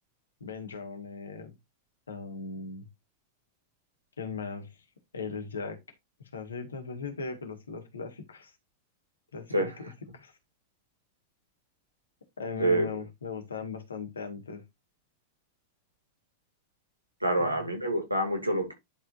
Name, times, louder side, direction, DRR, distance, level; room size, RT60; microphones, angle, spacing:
voice 1, 0.4-1.5 2.1-2.9 4.2-4.7 5.1-5.8 6.3-8.5 9.3-10.3 12.4-14.6 17.4-17.5, left 5 dB, 75° left, 1.9 m, -38 dB
voice 2, 17.2-18.7, right 1 dB, 85° right, 2.5 m, -27 dB
11.0 x 4.4 x 2.6 m
figure-of-eight pair, 90°, 0 cm